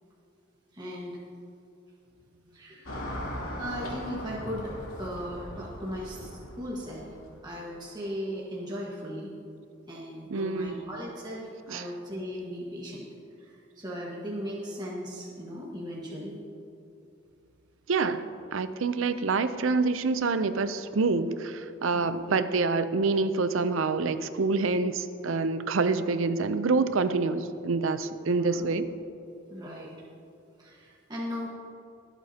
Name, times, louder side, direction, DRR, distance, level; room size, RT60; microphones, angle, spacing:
voice 1, 0.7-1.2 2.5-3.0 3.6-7.1 7.4-9.4 9.8-13.1 13.4-16.4 21.9-22.2 28.4-28.7 29.5-29.9 30.6-31.5, equal, 20° right, -5 dB, 1.5 m, -37 dB
Car passing by / Traffic noise roadway noise, 2.9-7.5, equal, 90° left, 2.9 m, -39 dB
voice 2, 10.3-10.8 11.7-11.8 17.9-28.9, right 4 dB, 75° right, 12 dB, 0.6 m, -27 dB
24.0 x 8.2 x 2.9 m, 2.6 s
head